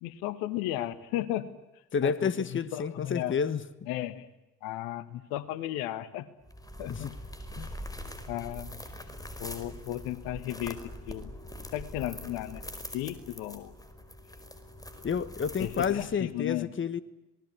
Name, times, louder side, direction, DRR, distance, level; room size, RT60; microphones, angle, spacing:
voice 1, 0.0-1.5 2.0-3.4 3.9-4.3 4.6-6.3 6.8-7.1 8.3-8.8 9.4-11.3 11.7-12.6 12.9-13.7 15.6-16.7, left 13 dB, 70° left, 1.5 m, -35 dB
voice 2, 1.9-3.6 6.9-7.1 7.6-7.7 15.0-17.0, left 6 dB, 35° left, 1.4 m, -30 dB
sound 1, 6.4-16.3, left 1 dB, 10° left, 4.9 m, -43 dB
27.5 x 20.0 x 9.4 m
figure-of-eight pair, 50°, 36 cm